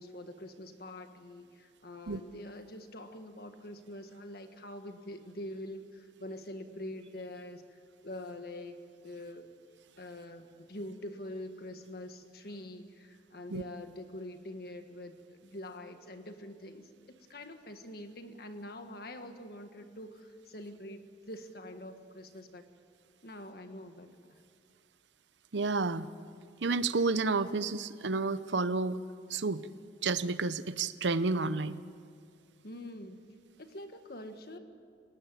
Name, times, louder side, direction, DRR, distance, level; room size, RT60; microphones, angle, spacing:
voice 1, 0.0-8.8 9.0-9.5 10.0-22.6 23.2-24.4 32.6-33.2 33.6-34.6, left 1 dB, 55° left, 7 dB, 1.7 m, -45 dB
voice 2, 25.5-26.1 26.6-29.0 29.3-29.7 30.0-31.8, right 3 dB, 80° right, 14 dB, 0.8 m, -30 dB
27.0 x 17.5 x 9.2 m, 2.2 s
head